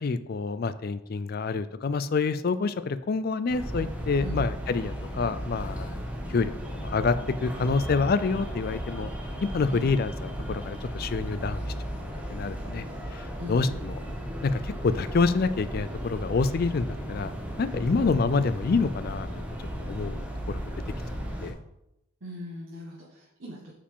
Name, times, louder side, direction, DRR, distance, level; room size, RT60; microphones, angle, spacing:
voice 1, 0.0-6.0 6.3-7.2 7.4-9.1 9.4-11.7 12.3-12.8 13.1-14.0 14.4-17.3 17.6-19.5 19.8-20.7 21.4-21.6, left 4 dB, 45° left, 13 dB, 0.4 m, -27 dB
sound 1, 3.5-21.5, equal, 5° right, 0.9 m, -35 dB
voice 2, 4.2-4.5 9.7-9.9 13.4-13.8 17.9-18.1 22.2-23.7, left 1 dB, 65° right, -3 dB, 1.2 m, -40 dB
8.5 x 4.9 x 3.6 m, 0.85 s
head